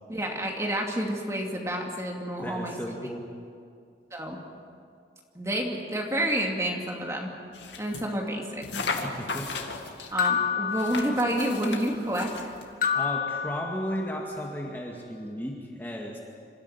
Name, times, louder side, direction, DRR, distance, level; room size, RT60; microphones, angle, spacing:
voice 1, 0.1-2.7 4.1-4.4 5.3-7.3 7.8-8.6 10.1-12.5, right 1 dB, 15° right, 0 dB, 2.6 m, -29 dB
voice 2, 2.4-3.3 9.0-9.6 12.9-16.2, equal, 10° left, -1 dB, 2.0 m, -34 dB
sound 1, 7.5-8.1 8.6-10.1 10.7-12.7, left 4 dB, 85° left, 2.2 m, -35 dB
sound 2, 10.2-11.7 12.8-14.3, left 7 dB, 50° left, 1.9 m, -29 dB
26.5 x 13.5 x 9.8 m, 2.3 s
head